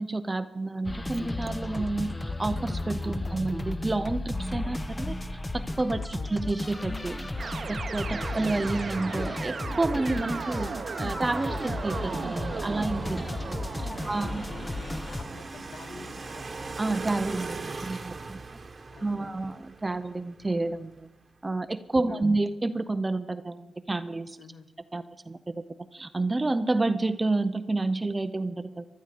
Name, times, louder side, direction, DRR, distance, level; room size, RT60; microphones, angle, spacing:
voice 1, 0.0-7.3 7.7-10.7 11.0-13.2 14.1-14.4 16.8-17.6 17.8-18.4 19.0-21.1 21.4-24.4 24.9-25.6 25.9-28.9, right 2 dB, 25° right, 10 dB, 0.6 m, -29 dB
sound 1, 0.8-15.2, left 2 dB, 20° left, 0.9 m, -34 dB
voice 2, 3.1-3.4 6.0-6.4 8.1-8.8 13.1-13.5 13.9-16.5 18.9-19.5 21.9-22.3 24.4-24.7, left 4 dB, 75° left, 10 dB, 1.1 m, -48 dB
sound 2, 4.9-21.1, right 3 dB, 40° right, 1.2 m, -43 dB
sound 3, 7.4-15.5, right 5 dB, 55° right, 0.8 m, -36 dB
15.0 x 12.5 x 5.0 m, 1.1 s
cardioid pair, 75°, 0 cm